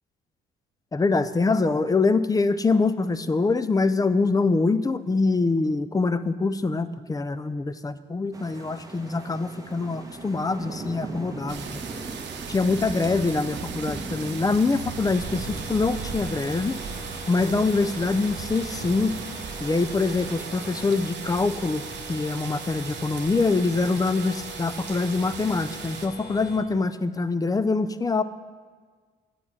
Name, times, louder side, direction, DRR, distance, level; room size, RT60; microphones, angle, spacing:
voice 1, 0.9-11.8 12.5-16.8 17.3-19.2 19.6-21.8 22.1-28.2, left 3 dB, 20° left, 14 dB, 0.4 m, -24 dB
sound 1, 8.3-21.1, right 2 dB, 15° right, 1.3 m, -40 dB
sound 2, 11.5-26.1, right 7 dB, 60° right, 0.9 m, -37 dB
sound 3, 14.9-26.6, left 2 dB, 55° left, 1.3 m, -42 dB
8.5 x 5.9 x 8.1 m, 1.6 s
cardioid pair, 90°, 20 cm